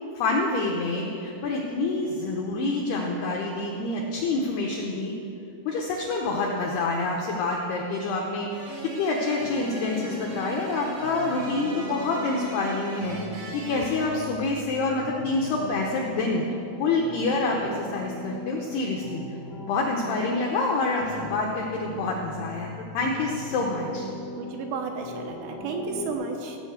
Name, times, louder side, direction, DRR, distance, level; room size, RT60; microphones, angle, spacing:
voice 1, 0.2-5.1 5.7-8.7 9.0-16.4 16.8-19.2 19.7-24.1, left 3 dB, 90° left, -1 dB, 2.3 m, -27 dB
sound 1, 8.5-14.0, right 3 dB, 60° right, 4.6 m, -41 dB
sound 2, 9.4-26.1, left 2 dB, 60° left, 2.4 m, -39 dB
voice 2, 16.9-17.2 24.4-26.6, right 4 dB, 80° right, 2 dB, 3.4 m, -33 dB
15.5 x 5.6 x 7.8 m, 2.6 s
omnidirectional pair, 5.8 m